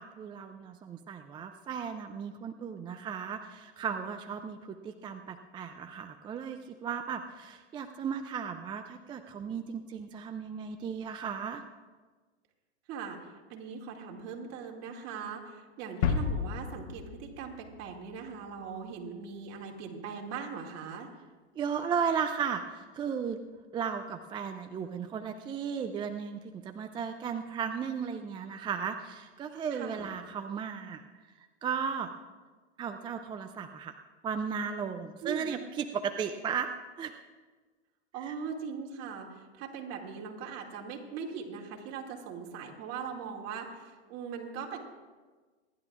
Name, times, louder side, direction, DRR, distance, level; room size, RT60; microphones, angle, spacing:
voice 1, 0.0-11.6 21.6-23.4 23.7-31.0 31.4-32.1 32.8-34.0 34.2-36.7 37.0-37.1 38.2-38.3, right 7 dB, 15° right, 7 dB, 0.3 m, -35 dB
voice 2, 13.5-21.1 29.7-30.1 35.2-35.6 38.1-44.8, right 6 dB, 45° right, 1 dB, 2.3 m, -40 dB
sound 1, 16.0-18.7, left 6 dB, 65° left, 1.1 m, -33 dB
27.0 x 11.0 x 2.4 m, 1.4 s
hypercardioid pair, 110°, 35 cm